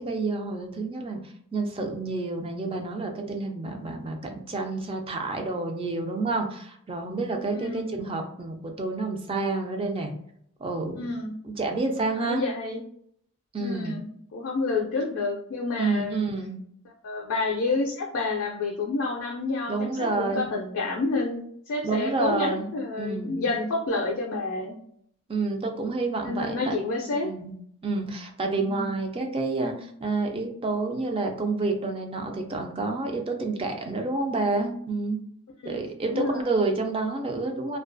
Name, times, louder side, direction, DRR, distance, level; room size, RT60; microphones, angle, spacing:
voice 1, 0.0-10.1 10.6-11.2 11.4-12.4 13.5-14.0 15.8-16.6 19.7-20.5 21.8-23.5 25.3-26.8 27.2-27.6 27.8-35.2 35.6-37.8, right 3 dB, 25° right, 4 dB, 0.3 m, -29 dB
voice 2, 7.5-7.9 10.9-11.3 12.2-12.8 13.6-16.2 17.0-24.7 26.2-27.3 28.6-28.9 35.6-36.4, left 3 dB, 60° left, -1 dB, 0.4 m, -29 dB
2.3 x 2.2 x 2.5 m, 0.67 s
head